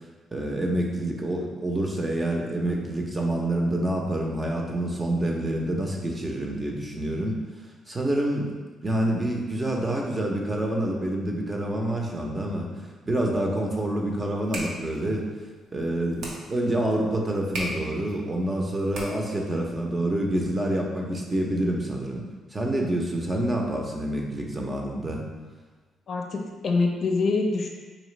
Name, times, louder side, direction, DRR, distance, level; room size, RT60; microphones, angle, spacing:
voice 1, 0.3-7.4 7.9-8.5 8.8-12.7 13.1-15.3 15.7-25.2, right 1 dB, 25° right, 0 dB, 0.7 m, -27 dB
sound 1, 14.2-19.5, right 1 dB, 80° right, 0.9 m, -39 dB
voice 2, 26.1-27.7, left 3 dB, 55° left, 1 dB, 0.5 m, -25 dB
4.1 x 3.1 x 3.2 m, 1.3 s
cardioid pair, 90°, 0 cm